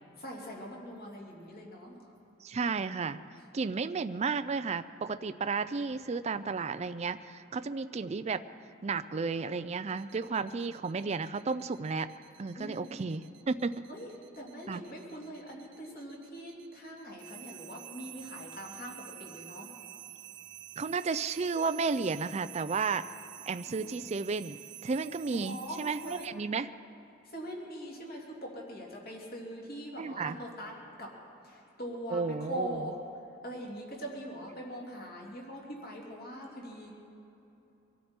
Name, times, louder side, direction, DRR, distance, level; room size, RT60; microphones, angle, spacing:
voice 1, 0.2-2.0 12.5-13.0 13.9-14.1 14.4-19.7 23.7-24.1 25.3-26.4 27.2-30.7 31.0-31.1 31.4-33.0 33.4-36.9, equal, 45° left, -2 dB, 2.7 m, -42 dB
voice 2, 2.4-3.2 3.5-8.4 8.8-12.1 12.4-13.8 14.7-14.8 20.8-23.1 23.5-26.7 30.0-30.4 32.1-32.9, right 4 dB, 30° right, 12 dB, 0.4 m, -33 dB
sound 1, 9.9-26.3, right 13 dB, 60° right, 0.7 m, -50 dB
24.5 x 13.0 x 4.4 m, 3.0 s
head